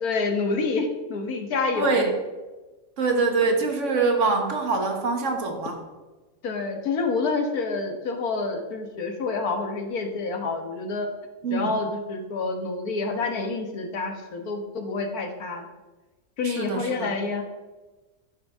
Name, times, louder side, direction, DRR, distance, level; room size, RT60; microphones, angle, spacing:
voice 1, 0.0-2.0 6.4-11.1 11.5-15.7 16.4-17.4, left 4 dB, 85° left, 5 dB, 1.7 m, -28 dB
voice 2, 1.7-2.1 3.0-5.8 11.4-11.7 16.4-17.2, right 4 dB, 55° right, 4 dB, 1.6 m, -24 dB
11.0 x 9.6 x 3.6 m, 1.2 s
omnidirectional pair, 1.5 m